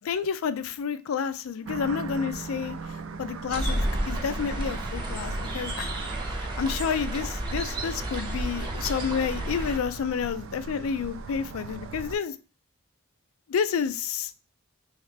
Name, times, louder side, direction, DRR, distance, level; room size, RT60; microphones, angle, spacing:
voice 1, 0.0-6.0 6.3-12.4 13.5-14.3, left 6 dB, 75° left, 12 dB, 0.4 m, -30 dB
sound 1, 1.7-12.2, right 3 dB, 65° right, 0.3 m, -38 dB
sound 2, 3.5-9.8, right 1 dB, 20° right, 0.6 m, -32 dB
3.2 x 3.1 x 3.2 m, 0.33 s
head